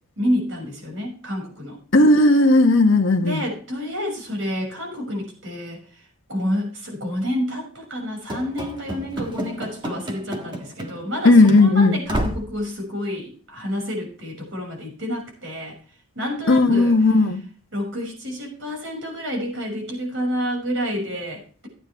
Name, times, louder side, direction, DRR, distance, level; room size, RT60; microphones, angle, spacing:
voice 1, 0.2-1.8 3.2-6.0 6.3-15.8 16.1-16.9 17.7-21.7, equal, 60° right, 6.4 m, -29 dB
voice 2, 1.9-3.4 11.2-12.0 16.5-17.4, left 2 dB, 65° left, 1.3 m, -15 dB
Run / Slam, 8.3-11.2 11.4-11.6 12.1-12.6, right 1 dB, 20° right, 1.5 m, -30 dB
15.0 x 10.0 x 3.5 m
head